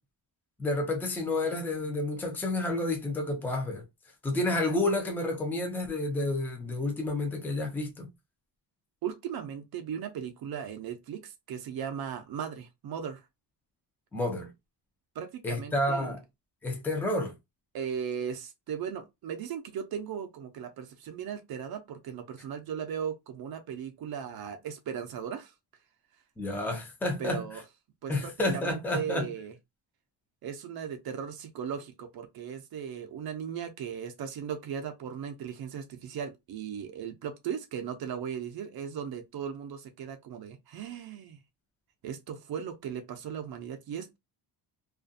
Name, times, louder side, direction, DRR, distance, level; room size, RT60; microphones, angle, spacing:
voice 1, 0.6-3.8 4.2-8.1 14.1-14.5 15.4-16.2 16.6-17.3 26.4-27.4 28.1-29.3, left 2 dB, 5° left, 0.4 m, -30 dB
voice 2, 9.0-13.2 15.1-16.1 17.7-25.5 27.2-27.6 28.0-29.5 30.4-41.4 42.0-44.2, right 8 dB, 60° right, 0.5 m, -37 dB
2.4 x 2.2 x 2.5 m
cardioid pair, 160°, 43 cm